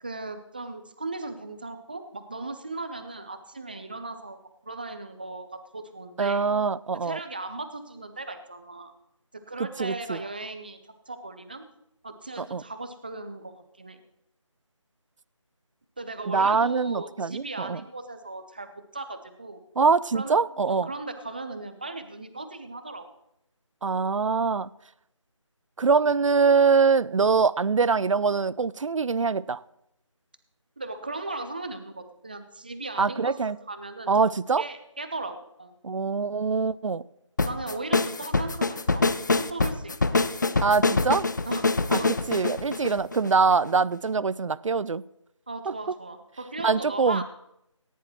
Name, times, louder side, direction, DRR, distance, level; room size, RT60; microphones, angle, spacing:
voice 1, 0.0-4.4 4.6-6.4 7.0-8.9 9.5-10.8 11.1-11.7 12.0-14.0 16.0-18.7 18.9-19.6 20.1-20.4 20.7-23.0 30.8-34.1 34.6-35.7 37.4-39.1 39.3-40.2 41.5-42.1 45.5-47.2, right 2 dB, 15° right, 9 dB, 0.5 m, -37 dB
voice 2, 6.2-7.2 9.8-10.2 12.4-12.6 16.3-17.8 19.8-20.9 23.8-24.7 25.8-29.6 33.0-33.6 34.1-34.6 35.8-37.0 40.6-41.3 41.9-42.0 42.3-45.0 45.7-46.0 46.6-47.2, right 5 dB, 75° right, 20 dB, 0.4 m, -23 dB
sound 1, 37.4-43.7, left 3 dB, 35° left, 0.5 m, -25 dB
18.0 x 10.5 x 3.1 m, 0.80 s
figure-of-eight pair, 165°, 16 cm